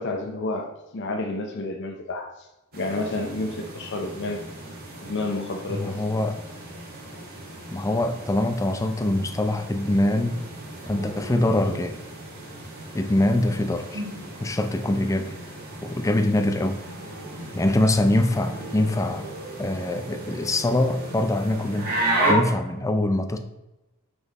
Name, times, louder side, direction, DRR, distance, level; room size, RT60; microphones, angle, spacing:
voice 1, 0.0-2.5 2.7-4.4 5.0-6.0, left 2 dB, 55° left, 3 dB, 0.7 m, -30 dB
sound 1, 2.7-22.3, right 2 dB, 45° right, 1.8 m, -34 dB
voice 2, 5.7-6.4 7.7-10.4 10.9-12.0 12.9-14.0 14.4-15.3 15.8-16.8 17.6-19.3 19.6-23.4, left 1 dB, 15° left, 7 dB, 0.4 m, -24 dB
6.1 x 5.3 x 4.0 m, 0.98 s
head